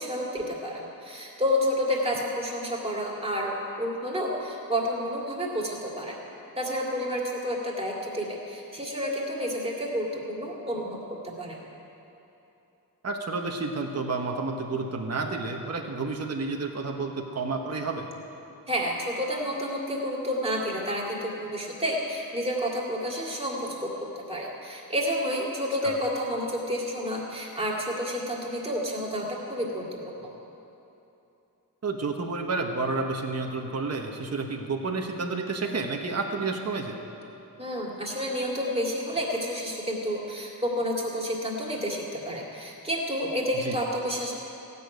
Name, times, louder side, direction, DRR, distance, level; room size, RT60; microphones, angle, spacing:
voice 1, 0.0-6.2 6.6-11.6 18.7-23.9 24.3-30.3 37.6-44.4, equal, 15° right, -3 dB, 2.4 m, -30 dB
voice 2, 13.0-18.1 25.8-26.0 31.8-37.0 43.6-43.8, right 3 dB, 45° right, 2 dB, 1.1 m, -30 dB
15.5 x 7.0 x 9.3 m, 2.9 s
wide cardioid pair, 135°, 36 cm